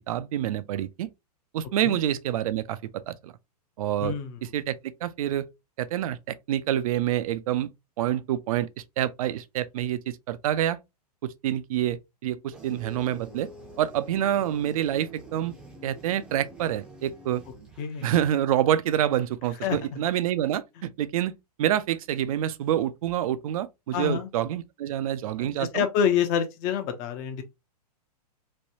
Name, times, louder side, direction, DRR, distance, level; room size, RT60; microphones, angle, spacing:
voice 1, 0.1-1.1 1.5-3.3 3.8-4.1 4.4-4.7 5.0-5.5 5.8-7.7 8.0-10.8 11.2-13.5 13.8-15.5 15.8-17.4 18.0-21.3 21.6-25.8, right 11 dB, 60° right, 0.4 m, -27 dB
voice 2, 4.0-4.4 17.8-18.1 19.6-20.0 23.9-24.3 25.4-27.4, left 8 dB, 40° left, 0.7 m, -27 dB
sound 1, 12.5-18.1, right 1 dB, 5° right, 0.6 m, -47 dB
3.2 x 2.2 x 2.7 m
hypercardioid pair, 125°, 21 cm